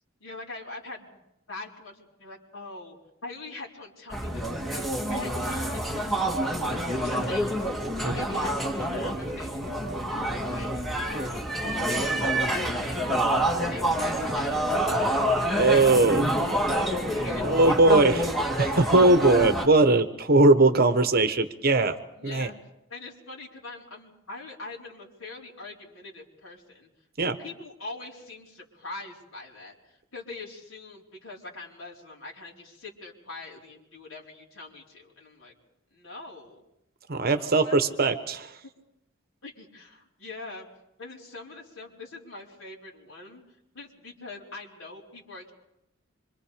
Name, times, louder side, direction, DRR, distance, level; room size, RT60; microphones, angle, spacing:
voice 1, 0.2-1.2 1.5-3.0 3.2-6.3 6.7-7.7 8.0-9.6 10.2-10.7 11.1-15.0 16.9-17.6 22.2-22.6 22.9-26.9 27.2-35.5 35.9-36.6 37.3-37.8 39.4-40.7 41.0-43.4 43.7-45.5, left 3 dB, 80° left, -2 dB, 4.3 m, -43 dB
sound 1, 4.1-19.6, right 1 dB, ahead, 2.3 m, -27 dB
voice 2, 15.6-16.2 17.4-18.3 18.6-22.0 22.2-22.5 27.2-27.3 37.1-38.5, right 2 dB, 50° right, 9 dB, 1.2 m, -20 dB
26.0 x 24.5 x 5.1 m, 0.86 s
head